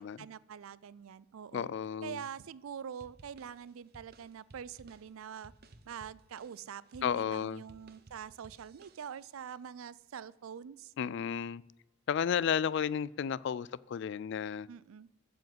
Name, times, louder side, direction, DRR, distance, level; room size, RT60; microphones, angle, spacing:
voice 1, 0.0-1.7 2.0-5.5 5.9-10.9 14.7-15.1, right 7 dB, 85° right, 0.4 m, -45 dB
voice 2, 1.5-2.2 7.0-7.6 11.0-11.6 12.1-14.7, left 7 dB, 60° left, 0.3 m, -33 dB
sound 1, 3.0-9.4, right 2 dB, 50° right, 0.8 m, -59 dB
7.8 x 7.1 x 7.8 m
head